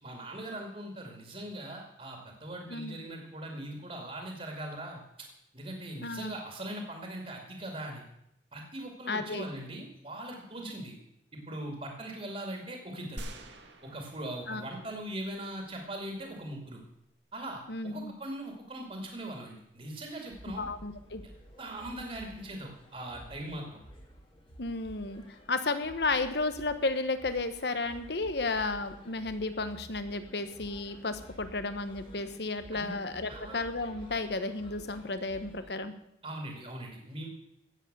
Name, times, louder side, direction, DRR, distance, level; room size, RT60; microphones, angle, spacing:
voice 1, 0.0-5.3 5.5-8.0 8.5-11.0 11.3-13.3 13.8-16.8 17.3-20.7 21.6-23.8 32.7-33.0 33.3-33.6 36.2-37.3, right 1 dB, 35° right, 2 dB, 2.4 m, -40 dB
voice 2, 6.0-6.3 9.1-9.5 14.5-14.6 17.7-18.1 20.6-21.2 24.6-25.2 25.5-35.9, left 3 dB, 65° left, 10 dB, 1.2 m, -33 dB
sound 1, 13.2-14.9 15.4-15.5, right 1 dB, 75° right, 1.8 m, -45 dB
sound 2, 20.3-35.7, equal, 30° left, 1.9 m, -52 dB
16.5 x 8.0 x 6.8 m, 0.81 s
head